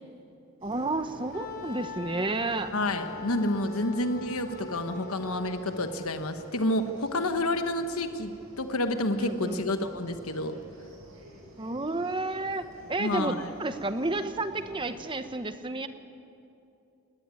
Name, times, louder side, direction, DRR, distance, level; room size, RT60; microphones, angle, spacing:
voice 1, 0.6-2.7 9.2-9.6 11.6-15.9, right 2 dB, 20° right, 9 dB, 0.9 m, -31 dB
sound 1, 0.6-15.2, equal, 70° right, 6.2 m, -50 dB
Wind instrument woodwind instrument, 1.3-6.0, left 4 dB, 45° left, 3.4 m, -42 dB
voice 2, 2.7-10.5 13.0-13.5, left 1 dB, 80° left, 7 dB, 1.2 m, -29 dB
20.0 x 18.0 x 9.8 m, 2.7 s
head